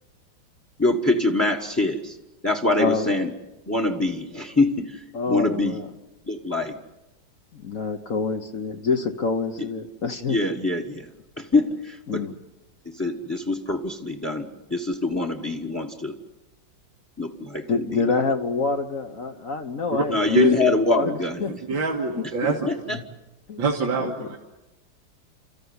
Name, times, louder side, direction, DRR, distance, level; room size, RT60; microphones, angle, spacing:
voice 1, 0.8-2.2 2.4-3.3 3.7-5.0 5.3-5.7 6.3-6.7 10.3-11.1 11.4-12.2 12.9-16.1 17.2-17.6 20.1-21.6 22.4-23.0, left 2 dB, 10° left, 5 dB, 1.2 m, -24 dB
voice 2, 2.8-3.1 5.1-5.9 7.5-10.4 12.1-12.4 17.7-21.5 22.1-22.2 23.5-23.6 23.9-24.1, left 4 dB, 50° left, 5 dB, 1.4 m, -27 dB
voice 3, 21.7-22.6 22.9-23.0 23.6-24.4, right 3 dB, 80° right, 0 dB, 2.5 m, -23 dB
29.5 x 14.5 x 9.6 m, 1.0 s
omnidirectional pair, 2.0 m